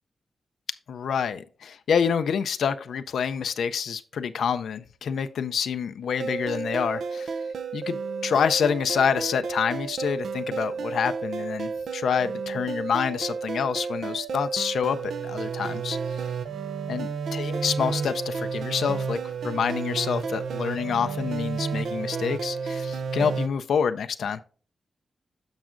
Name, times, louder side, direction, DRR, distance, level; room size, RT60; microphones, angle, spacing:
voice 1, 0.9-7.3 7.7-15.0 15.2-16.2 16.9-24.4, left 7 dB, 90° left, 0.4 m, -27 dB
sound 1, 6.2-23.5, right 5 dB, 90° right, 0.5 m, -31 dB
10.5 x 6.1 x 2.5 m
cardioid pair, 65°, 0 cm